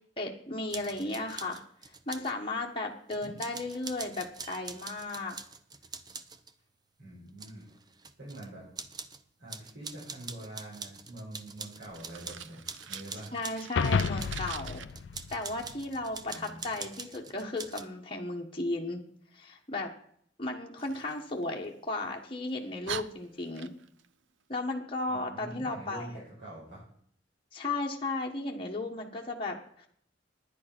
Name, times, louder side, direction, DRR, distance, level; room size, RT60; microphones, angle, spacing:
voice 1, 0.2-1.6 2.1-5.4 13.3-14.8 15.3-19.0 19.3-19.9 20.4-23.7 24.5-26.1 27.5-29.9, left 2 dB, 30° left, -1 dB, 1.3 m, -35 dB
sound 1, 0.7-2.3 3.1-6.5 7.3-8.5 8.8-9.2 9.5-13.7 14.2-17.8, right 5 dB, 20° right, 0.7 m, -44 dB
voice 2, 7.0-7.7 8.2-8.6 9.4-13.3 16.3-16.7 25.1-26.8, right 1 dB, 65° right, -8 dB, 5.9 m, -45 dB
Fire, 11.9-14.8 20.8-22.0 22.5-22.6 22.8-24.1, right 8 dB, 85° right, 0.6 m, -43 dB
sound 2, 13.8-16.2, left 5 dB, 70° left, 0.4 m, -31 dB
11.0 x 10.0 x 6.0 m, 0.63 s
head